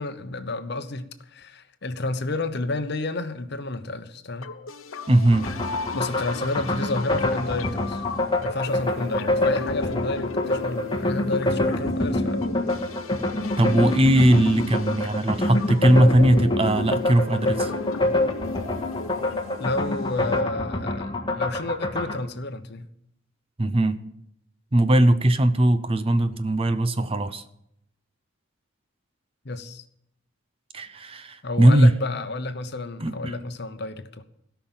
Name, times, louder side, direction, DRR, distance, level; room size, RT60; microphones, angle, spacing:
voice 1, 0.0-4.5 5.9-8.0 8.4-12.4 19.6-22.9 29.4-29.8 31.4-34.2, left 2 dB, 55° left, 10 dB, 1.0 m, -30 dB
sound 1, 4.4-20.4, left 4 dB, 85° left, 0.9 m, -37 dB
voice 2, 5.1-5.5 13.6-17.7 23.6-24.0 24.7-27.4 30.7-31.9 33.0-33.3, right 1 dB, 30° right, 11 dB, 0.7 m, -19 dB
sound 2, 5.3-22.2, left 2 dB, 25° left, 1.7 m, -26 dB
17.0 x 5.9 x 8.8 m, 0.74 s
head